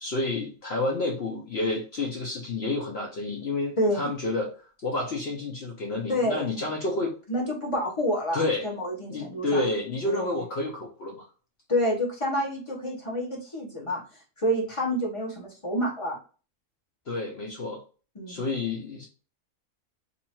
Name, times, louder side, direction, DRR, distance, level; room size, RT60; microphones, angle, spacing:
voice 1, 0.0-4.5 4.8-7.1 8.3-8.7 9.1-11.3 17.1-17.8 18.3-19.1, left 2 dB, 55° left, 0 dB, 0.9 m, -29 dB
voice 2, 3.8-4.1 6.1-6.6 7.3-9.6 10.0-10.3 11.7-14.0 14.4-16.2 18.1-18.5, equal, 25° left, -2 dB, 1.2 m, -28 dB
2.9 x 2.7 x 4.3 m, 0.36 s
omnidirectional pair, 1.5 m